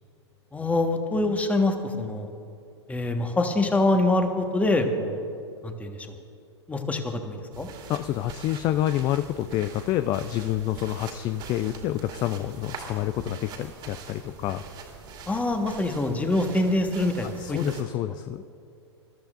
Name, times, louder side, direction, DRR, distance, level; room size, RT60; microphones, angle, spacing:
voice 1, 0.5-2.3 2.9-5.2 5.6-6.1 6.7-7.7 15.3-17.6, left 2 dB, 10° left, 5 dB, 1.4 m, -25 dB
sound 1, 7.5-17.8, right 5 dB, 30° right, 2.5 m, -43 dB
voice 2, 7.9-14.6 17.4-18.4, left 13 dB, 30° left, 11 dB, 0.4 m, -28 dB
26.5 x 13.5 x 2.6 m, 2.6 s
figure-of-eight pair, 105°, 15 cm